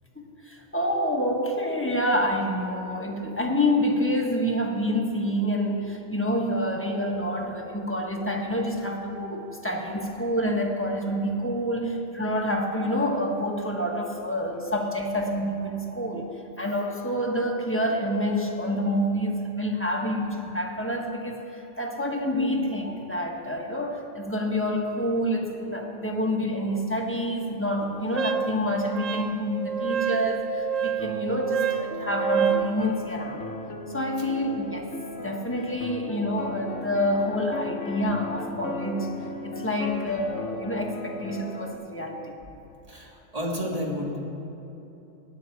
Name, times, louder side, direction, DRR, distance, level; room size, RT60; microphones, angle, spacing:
voice 1, 0.1-33.4 33.9-34.9 35.2-39.1 39.4-42.3, equal, 10° left, 0 dB, 1.1 m, -27 dB
Wind instrument woodwind instrument, 28.1-32.7, right 8 dB, 70° right, 1.1 m, -28 dB
sound 1, 31.0-41.8, left 2 dB, 65° left, 1.1 m, -37 dB
voice 2, 39.7-40.3 42.4-42.5 42.9-44.2, equal, 30° right, -2 dB, 1.8 m, -33 dB
16.0 x 10.5 x 4.6 m, 3.0 s
omnidirectional pair, 1.4 m